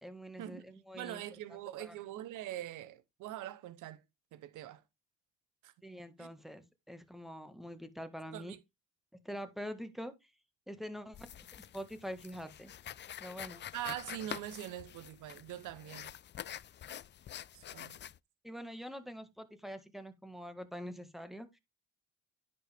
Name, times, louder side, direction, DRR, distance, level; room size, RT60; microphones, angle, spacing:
voice 1, 0.0-1.2 1.5-2.0 5.8-8.5 9.2-10.3 10.7-12.7 13.2-13.6 18.4-21.6, equal, ahead, 1.7 m, -45 dB
voice 2, 0.9-4.0 4.3-4.8 5.6-5.7 6.2-6.3 8.3-8.6 13.7-16.1 17.5-18.0, right 13 dB, 90° right, 1.0 m, -43 dB
sound 1, 11.1-18.2, left 10 dB, 40° left, 0.4 m, -47 dB
10.0 x 5.4 x 3.5 m
cardioid pair, 90°, 30 cm